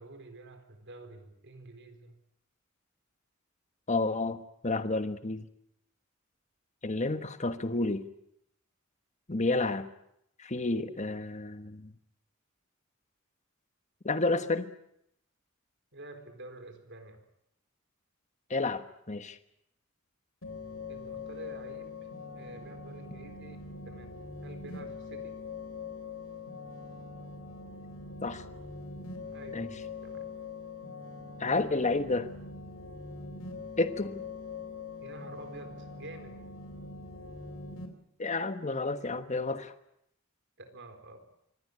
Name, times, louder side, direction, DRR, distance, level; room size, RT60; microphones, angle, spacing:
voice 1, 0.0-2.2 15.9-17.2 20.9-22.1 22.4-24.1 24.4-25.4 29.3-30.3 35.0-36.4 40.6-41.3, right 2 dB, 60° right, 7 dB, 4.2 m, -48 dB
voice 2, 3.9-5.4 6.8-8.0 9.3-9.9 10.4-11.9 14.0-14.7 18.5-19.4 28.2-28.4 29.5-29.7 31.4-32.3 33.8-34.2 38.2-39.7, left 3 dB, 35° left, 10 dB, 1.3 m, -30 dB
sound 1, 20.4-37.9, left 4 dB, 75° left, 3.8 m, -43 dB
25.0 x 17.5 x 9.7 m, 0.78 s
head